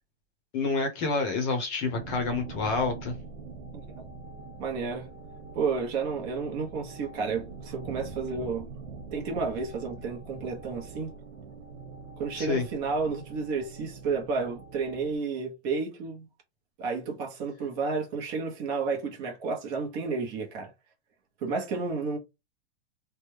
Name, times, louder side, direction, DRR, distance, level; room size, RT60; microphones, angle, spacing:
voice 1, 0.5-3.1 12.4-12.6, left 4 dB, 25° left, 0.8 m, -28 dB
sound 1, 1.8-15.2, right 4 dB, 70° right, 1.3 m, -44 dB
voice 2, 4.6-5.1 5.5-8.7 9.1-11.1 12.2-16.3 16.8-20.7 21.4-22.2, right 4 dB, 30° right, 0.8 m, -31 dB
3.3 x 2.2 x 3.2 m
supercardioid pair, 160°, 33 cm